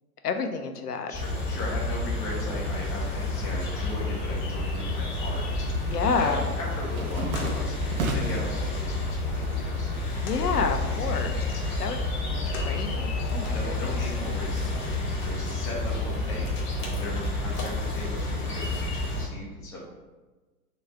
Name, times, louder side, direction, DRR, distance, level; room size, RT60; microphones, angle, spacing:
voice 1, 0.2-1.1 5.9-6.5 10.2-11.4 11.8-12.0 12.3-13.9, left 5 dB, 85° left, 5 dB, 0.6 m, -29 dB
sound 1, 1.1-19.3, left 2 dB, 25° left, 0.8 m, -29 dB
voice 2, 1.1-10.7 11.6-11.8 13.1-13.3 13.5-19.8, left 1 dB, 10° left, -5 dB, 0.4 m, -38 dB
sound 2, 5.1-17.1, equal, 55° left, 0.7 m, -46 dB
sound 3, 6.5-8.5 9.0-9.7 10.0-11.6, right 3 dB, 65° right, 0.8 m, -35 dB
3.8 x 2.3 x 4.4 m, 1.3 s
figure-of-eight pair, 100°, 45 cm